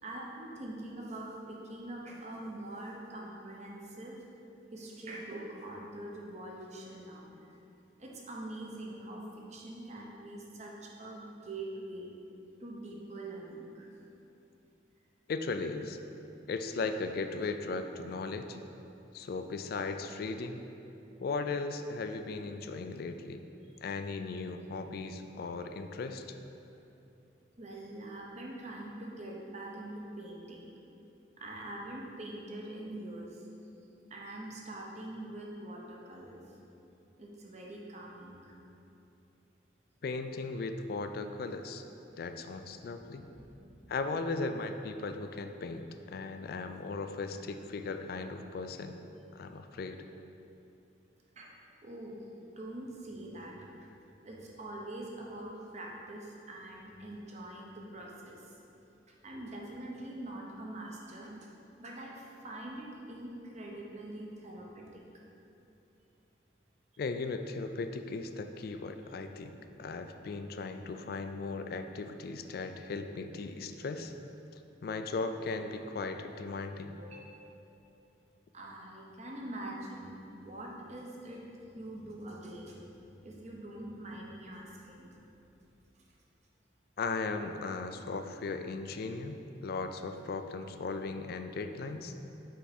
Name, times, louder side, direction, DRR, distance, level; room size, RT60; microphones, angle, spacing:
voice 1, 0.0-4.2 4.7-7.5 8.0-12.1 12.6-13.9 23.6-23.8 27.6-30.7 31.4-33.5 34.1-36.6 37.2-38.5 43.2-43.8 51.4-51.5 51.8-52.3 52.6-54.0 54.2-58.5 59.1-61.4 61.8-65.0 77.0-77.2 78.5-82.8 83.2-85.2, right 1 dB, 40° right, -2 dB, 0.8 m, -44 dB
voice 2, 15.3-16.0 16.5-18.6 19.1-20.6 21.2-23.4 23.8-26.2 40.0-41.8 42.2-43.3 43.9-48.9 49.3-50.0 67.0-74.1 74.8-76.9 87.0-92.1, left 3 dB, 55° left, 7 dB, 0.3 m, -37 dB
5.7 x 4.7 x 4.2 m, 2.8 s
head